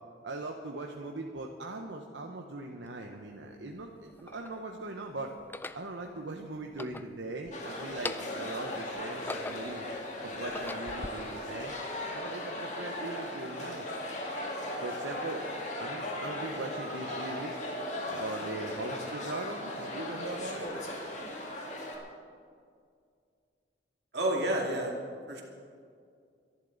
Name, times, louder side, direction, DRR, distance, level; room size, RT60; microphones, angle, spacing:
voice 1, 0.2-5.3 5.7-9.9 10.2-11.7 12.1-13.9 14.8-15.5 15.8-17.6 18.1-20.7, right 2 dB, 80° right, 2 dB, 1.0 m, -40 dB
sound 1, 2.9-3.0 3.8-4.6 5.4-5.9 6.6-7.6 7.9-8.5 9.0-9.8 10.3-11.1, left 2 dB, 10° left, 0.3 m, -41 dB
sound 2, 7.5-22.0, left 1 dB, 40° left, 2.2 m, -37 dB
voice 2, 24.1-25.0 25.3-25.4, right 1 dB, 60° right, 0 dB, 2.4 m, -29 dB
24.0 x 11.0 x 4.0 m, 2.2 s
head